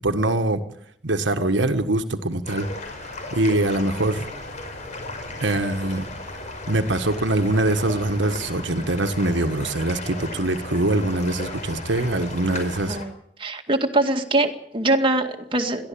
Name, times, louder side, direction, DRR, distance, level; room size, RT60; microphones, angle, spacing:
voice 1, 0.0-0.6 1.0-2.7 3.3-4.3 5.4-6.1 6.7-13.0, right 2 dB, 75° right, 7 dB, 1.5 m, -23 dB
sound 1, 2.4-13.1, left 2 dB, 40° left, 5.4 m, -35 dB
voice 2, 13.4-15.9, right 2 dB, 30° right, 3 dB, 2.2 m, -23 dB
22.0 x 14.5 x 8.6 m, 0.68 s
head